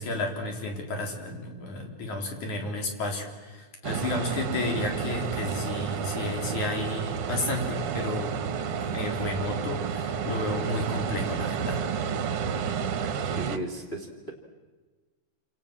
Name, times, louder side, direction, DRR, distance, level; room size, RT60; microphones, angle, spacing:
voice 1, 0.0-8.4 8.8-11.8, left 2 dB, 75° left, 3 dB, 5.1 m, -32 dB
sound 1, 3.8-13.6, right 7 dB, 55° right, 2.0 m, -31 dB
voice 2, 13.0-14.3, right 1 dB, 20° left, 1 dB, 3.1 m, -36 dB
28.0 x 27.5 x 7.6 m, 1.3 s
omnidirectional pair, 3.4 m